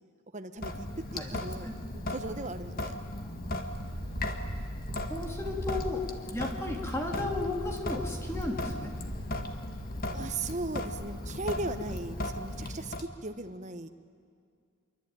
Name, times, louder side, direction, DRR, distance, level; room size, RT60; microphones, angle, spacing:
voice 1, 0.3-3.0 4.0-4.2 10.1-13.9, right 2 dB, 35° right, 8 dB, 1.2 m, -38 dB
Sink (filling or washing) / Drip, 0.6-13.0, left 1 dB, 40° left, 1.8 m, -37 dB
voice 2, 3.0-3.7 5.1-6.0 6.3-8.9, left 2 dB, 10° left, 1 dB, 2.9 m, -35 dB
sound 1, 3.6-10.0, right 1 dB, 50° right, 1.5 m, -42 dB
26.5 x 23.5 x 9.2 m, 2.2 s
head